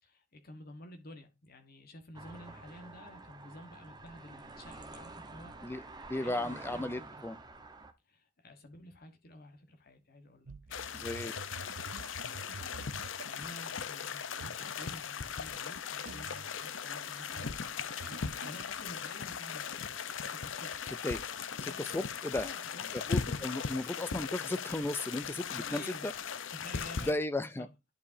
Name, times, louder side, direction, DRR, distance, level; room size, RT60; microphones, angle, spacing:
voice 1, 0.0-5.5 6.1-7.2 8.0-11.3 11.9-12.8 13.2-19.8 20.1-20.8 21.6-23.1 25.4-26.1 26.5-27.7, left 1 dB, 50° left, 1.3 m, -51 dB
sound 1, 2.1-7.9, right 3 dB, 20° right, 1.0 m, -49 dB
voice 2, 6.1-7.4 10.9-11.3 21.0-21.2 21.6-22.5 22.9-26.1 27.1-27.7, left 2 dB, 10° left, 0.4 m, -35 dB
sound 2, 10.5-13.3 14.4-14.9 16.1-16.5 17.3-18.7 20.1-22.0 22.3-22.4, right 5 dB, 75° right, 0.5 m, -49 dB
sound 3, 10.7-27.1, left 6 dB, 75° left, 0.7 m, -38 dB
11.0 x 4.9 x 2.7 m
head